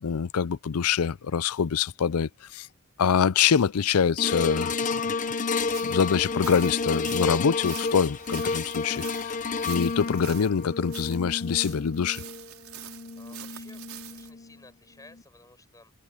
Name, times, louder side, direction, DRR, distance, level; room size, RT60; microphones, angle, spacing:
voice 1, 0.0-2.7 3.0-5.0 5.8-9.3 9.7-12.2, left 7 dB, 80° left, 0.5 m, -25 dB
sound 1, 4.2-14.6 15.1-15.2, left 4 dB, 35° left, 0.7 m, -31 dB
sound 2, 5.6-14.3, right 11 dB, 70° right, 5.7 m, -45 dB
voice 2, 13.1-15.9, left 2 dB, 15° left, 6.2 m, -54 dB
head